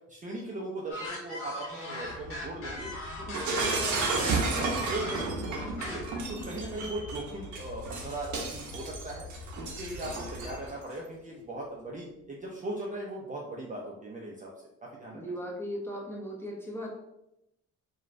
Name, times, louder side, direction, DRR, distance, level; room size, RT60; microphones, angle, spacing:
voice 1, 0.1-2.9 3.2-6.0 6.4-9.2 9.6-14.5 14.8-15.2, right 1 dB, 25° right, -3 dB, 0.5 m, -39 dB
sound 1, 0.9-6.2, left 1 dB, 45° left, 1.1 m, -39 dB
sound 2, 2.0-10.7, left 3 dB, 80° left, 0.5 m, -45 dB
Shatter, 3.3-10.7, right 3 dB, 75° right, 0.7 m, -32 dB
voice 2, 15.1-16.9, equal, 10° left, -3 dB, 0.8 m, -37 dB
3.0 x 2.3 x 2.5 m, 0.86 s
cardioid pair, 90°, 30 cm